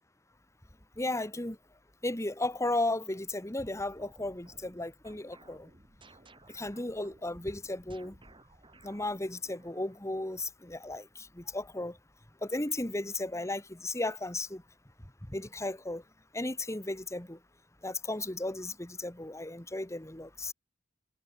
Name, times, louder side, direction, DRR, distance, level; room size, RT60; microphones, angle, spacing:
voice 1, 1.0-1.6 2.0-5.7 6.5-8.1 8.8-12.0 12.4-14.6 15.3-16.0 16.3-17.4 17.8-20.5, left 2 dB, 15° left, 2.0 m, -35 dB
sound 1, 3.8-10.0, right 2 dB, 25° right, 5.4 m, -59 dB
head